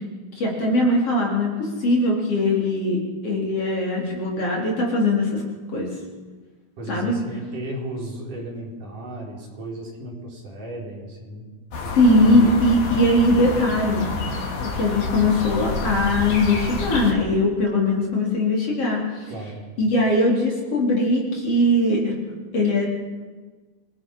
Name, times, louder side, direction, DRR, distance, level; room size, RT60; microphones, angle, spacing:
voice 1, 0.4-5.4 5.7-5.9 6.9-7.2 11.9-14.1 14.6-19.3 19.8-22.9, left 1 dB, 40° left, -2 dB, 5.0 m, -20 dB
voice 2, 6.8-11.5 19.3-19.6, right 1 dB, 60° right, -2 dB, 6.3 m, -34 dB
sound 1, 11.7-17.1, left 3 dB, 85° left, 5.1 m, -28 dB
27.5 x 21.0 x 5.8 m, 1.4 s
omnidirectional pair, 4.2 m